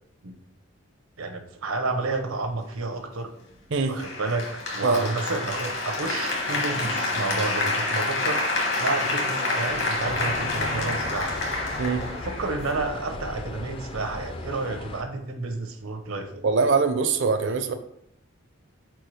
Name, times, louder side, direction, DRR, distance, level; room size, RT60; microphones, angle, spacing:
voice 1, 1.2-3.3 3.9-8.4 8.8-11.3 12.2-16.4, right 3 dB, 90° right, 6 dB, 0.9 m, -30 dB
Applause, 4.0-13.0, left 2 dB, 60° left, 1.3 m, -28 dB
sound 1, 10.0-15.0, left 2 dB, 25° left, 0.4 m, -37 dB
voice 2, 16.4-17.7, right 4 dB, 60° right, 7 dB, 0.5 m, -22 dB
4.6 x 4.5 x 4.8 m, 0.74 s
head